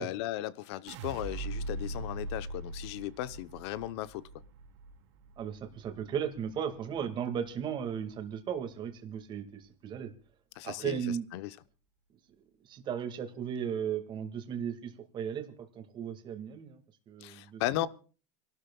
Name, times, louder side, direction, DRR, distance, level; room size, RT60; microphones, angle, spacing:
voice 1, 0.0-4.3 10.6-11.6 17.2-17.9, left 15 dB, 65° left, 15 dB, 0.9 m, -36 dB
sound 1, 0.9-7.0 7.4-8.0, right 2 dB, 75° right, 2.2 m, -41 dB
voice 2, 5.4-10.1 10.6-11.2 12.7-16.8 17.1-17.9, right 8 dB, 30° right, 7 dB, 2.0 m, -36 dB
29.5 x 12.5 x 2.3 m, 0.36 s
supercardioid pair, 145°, 15 cm